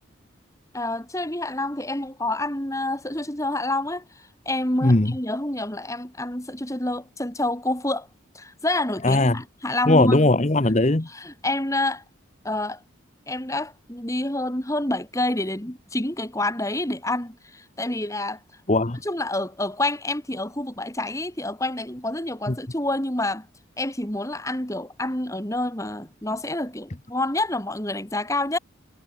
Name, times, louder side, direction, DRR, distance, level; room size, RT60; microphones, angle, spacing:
voice 1, 0.7-8.1 8.3-10.3 11.1-12.0 12.4-12.8 13.3-18.4 19.0-23.5 23.8-28.6, left 2 dB, 15° left, 2.6 m, -28 dB
voice 2, 4.8-5.1 9.0-9.4 9.9-11.1 18.7-19.0 22.5-22.6, left 2 dB, 35° left, 1.0 m, -19 dB
head